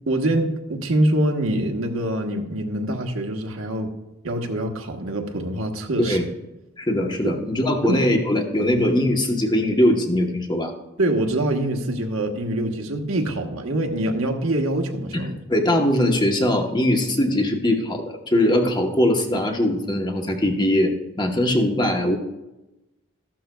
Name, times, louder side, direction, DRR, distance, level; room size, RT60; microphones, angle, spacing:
voice 1, 0.1-3.9 4.2-6.2 7.2-7.4 7.8-8.0 8.7-8.8 11.0-15.4, right 1 dB, 85° right, 3 dB, 1.2 m, -24 dB
voice 2, 6.8-10.7 15.1-15.2 15.5-22.2, left 1 dB, 20° left, 3 dB, 1.0 m, -21 dB
14.0 x 12.0 x 2.3 m, 0.99 s
head